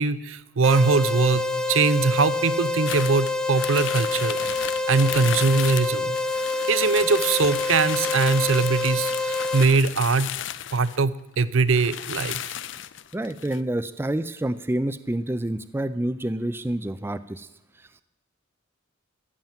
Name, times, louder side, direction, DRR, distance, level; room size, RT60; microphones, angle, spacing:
voice 1, 0.0-6.2 6.7-10.3 10.7-12.4, right 4 dB, 70° right, 15 dB, 0.6 m, -22 dB
sound 1, 0.6-9.6, left 2 dB, 5° left, 0.8 m, -27 dB
sound 2, 2.9-11.0 11.4-11.5 11.7-13.6, left 11 dB, 60° left, 0.5 m, -34 dB
voice 2, 13.1-17.5, right 1 dB, 10° right, 12 dB, 0.4 m, -28 dB
15.0 x 7.4 x 9.1 m, 0.88 s
head